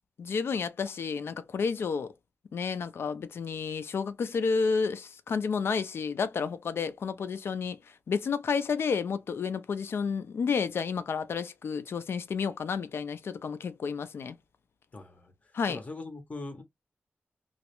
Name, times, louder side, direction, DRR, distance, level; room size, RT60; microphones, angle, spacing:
voice 1, 0.2-2.1 2.5-7.8 8.1-14.4 15.5-15.8, left 5 dB, 70° left, 0.4 m, -31 dB
voice 2, 14.9-16.6, left 2 dB, 35° left, 0.7 m, -42 dB
2.3 x 2.1 x 2.8 m
wide cardioid pair, 140°, 4 cm